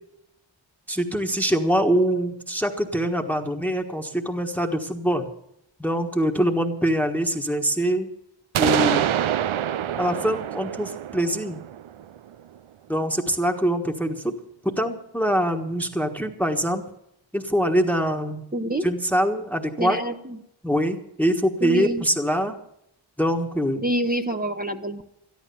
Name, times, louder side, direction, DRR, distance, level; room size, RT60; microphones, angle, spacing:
voice 1, 0.9-5.2 5.8-8.1 8.6-9.1 10.0-11.6 12.9-14.3 14.6-16.8 17.3-18.4 18.8-20.0 20.6-22.6 23.2-23.8, equal, 5° left, 4 dB, 1.4 m, -24 dB
sound 1, 8.5-12.3, right 10 dB, 75° right, 0.6 m, -25 dB
voice 2, 18.5-18.9 19.8-20.4 21.6-22.0 23.8-25.0, right 1 dB, 20° right, 5 dB, 1.0 m, -27 dB
13.0 x 11.5 x 6.9 m, 0.77 s
wide cardioid pair, 50°, 48 cm